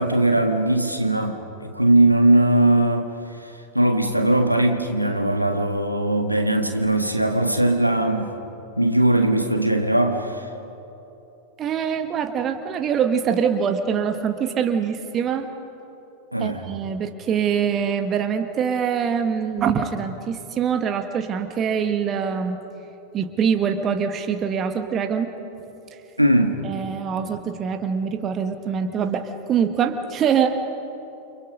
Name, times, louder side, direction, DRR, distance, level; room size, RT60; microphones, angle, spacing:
voice 1, 0.0-3.1 3.7-8.3 8.8-10.5 16.3-16.6 26.2-26.6, right 1 dB, 90° right, 5 dB, 1.6 m, -20 dB
voice 2, 11.6-15.5 16.4-22.6 23.1-25.3 26.6-30.6, right 7 dB, 30° right, 6 dB, 1.7 m, -24 dB
29.5 x 27.0 x 5.4 m, 3.0 s
figure-of-eight pair, 90°, 0 cm